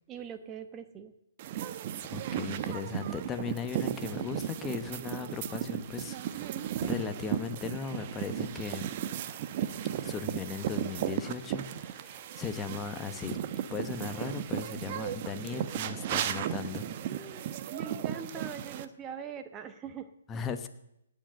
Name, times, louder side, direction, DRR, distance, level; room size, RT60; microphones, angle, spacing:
voice 1, 0.1-1.1 17.1-20.1, right 7 dB, 20° right, 9 dB, 1.1 m, -42 dB
sound 1, 1.4-18.9, right 10 dB, 40° right, 0.9 m, -35 dB
voice 2, 2.0-8.9 10.0-13.4 13.7-16.9 20.3-20.7, left 6 dB, 15° left, 8 dB, 1.1 m, -38 dB
18.0 x 7.8 x 7.8 m, 0.81 s
hypercardioid pair, 140°, 0 cm